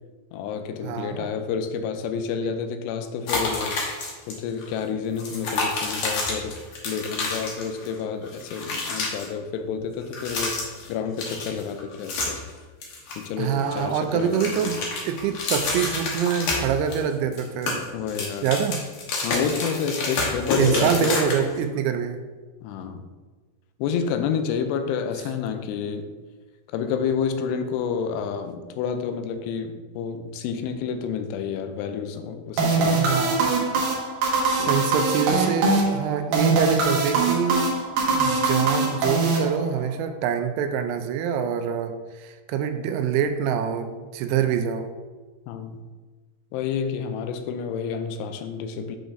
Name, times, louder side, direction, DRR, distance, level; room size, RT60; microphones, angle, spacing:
voice 1, 0.3-3.8 4.3-6.6 6.8-12.4 13.2-14.7 17.9-18.5 19.2-21.1 22.6-23.1 23.8-26.1 26.7-33.3 34.5-34.8 45.5-45.8 46.5-49.0, left 6 dB, 90° left, 8 dB, 2.7 m, -29 dB
voice 2, 0.8-1.3 13.4-14.8 15.1-17.8 18.4-18.8 20.6-22.2 32.9-33.5 34.7-37.7 38.1-44.9, right 7 dB, 85° right, 7 dB, 2.5 m, -25 dB
sound 1, 3.3-4.3 4.6-4.7 5.2-8.0 8.2-9.3 10.0-10.9 11.2-12.5 12.8-13.8 14.1-17.0 17.3-21.6, left 3 dB, 70° left, 1.6 m, -29 dB
sound 2, 32.6-40.0, right 3 dB, 70° right, 2.3 m, -22 dB
7.8 x 6.3 x 2.6 m, 1.3 s
omnidirectional pair, 4.8 m